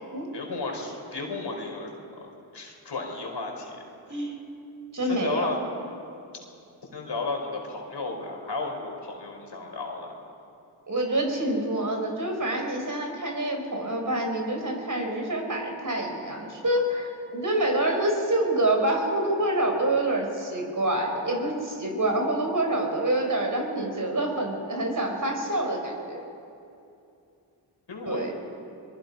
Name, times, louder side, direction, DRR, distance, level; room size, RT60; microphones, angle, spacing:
voice 1, 0.3-3.8 5.0-5.6 6.9-10.1 27.9-28.3, left 3 dB, 60° left, 1 dB, 4.6 m, -34 dB
voice 2, 4.1-4.4 4.9-5.6 10.9-26.2 28.1-28.3, right 1 dB, 40° right, 2 dB, 4.6 m, -27 dB
22.5 x 21.5 x 5.5 m, 2.7 s
cardioid pair, 40°, 45 cm